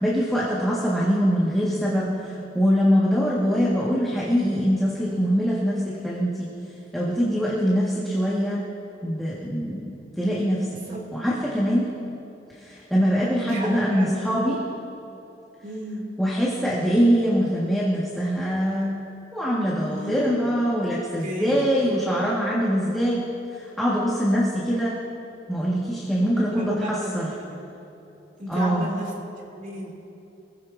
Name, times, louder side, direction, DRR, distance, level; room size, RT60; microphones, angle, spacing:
voice 1, 0.0-6.5 6.9-8.6 9.0-10.8 11.1-11.9 12.6-14.6 16.2-18.9 19.3-23.2 23.5-25.0 25.5-27.4 28.5-28.9, equal, ahead, -8 dB, 2.0 m, -23 dB
voice 2, 10.7-11.0 13.2-14.4 15.6-16.0 19.9-20.5 21.2-21.7 26.4-27.6 28.4-29.1 29.5-30.0, right 1 dB, 45° right, -2 dB, 3.0 m, -34 dB
24.5 x 16.5 x 2.8 m, 2.8 s
head